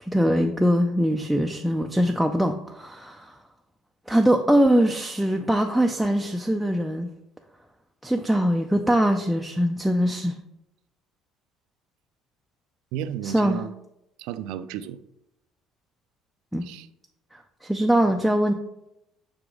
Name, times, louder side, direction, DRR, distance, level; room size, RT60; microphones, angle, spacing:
voice 1, 0.0-3.4 4.1-7.1 8.0-10.4 13.2-13.6 16.5-16.7 17.3-18.5, equal, ahead, 2 dB, 0.4 m, -22 dB
voice 2, 12.9-13.7 14.2-15.0 16.6-16.9, right 10 dB, 90° right, 13 dB, 0.4 m, -33 dB
6.0 x 4.8 x 3.7 m, 0.84 s
cardioid pair, 145°, 0 cm